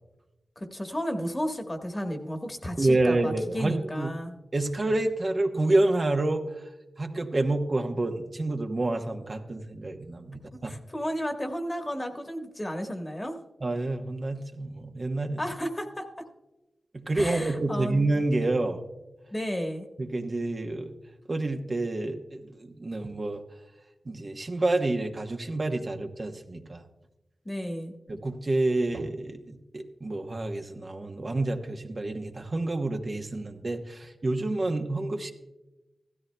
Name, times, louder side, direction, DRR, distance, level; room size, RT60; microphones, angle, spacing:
voice 1, 0.6-4.3 10.6-13.4 15.4-16.2 17.1-18.1 19.3-19.9 27.4-28.0, equal, 25° left, 4 dB, 1.3 m, -33 dB
voice 2, 2.8-4.1 4.5-6.4 7.0-10.7 13.6-15.4 16.9-18.8 20.0-20.9 21.3-23.4 24.1-26.8 28.1-35.3, right 2 dB, 50° right, 4 dB, 1.0 m, -28 dB
15.5 x 13.0 x 2.2 m, 1.0 s
cardioid pair, 45°, 0 cm